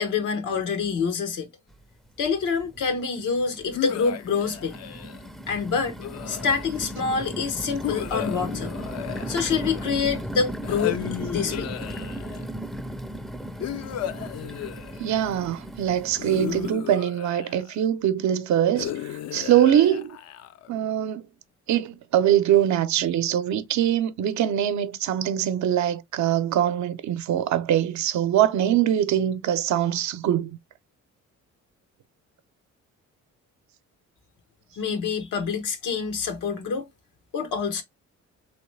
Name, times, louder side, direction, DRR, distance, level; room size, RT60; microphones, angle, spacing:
voice 1, 0.0-1.5 2.2-4.8 5.5-6.0 6.3-8.7 9.3-11.0 11.3-11.7 34.8-36.9 37.3-37.8, left 5 dB, 85° left, 1.2 m, -26 dB
sound 1, 1.7-1.8 2.2-2.9 3.5-16.7, right 1 dB, ahead, 0.5 m, -36 dB
sound 2, 3.7-5.3 6.0-6.9 7.8-10.0 10.6-12.5 13.6-15.4 16.2-17.8 18.8-20.7, left 11 dB, 60° left, 0.5 m, -35 dB
voice 2, 15.0-20.2 20.7-21.2 21.7-30.6, right 11 dB, 70° right, 0.6 m, -23 dB
3.1 x 3.0 x 3.2 m
cardioid pair, 90°, 30 cm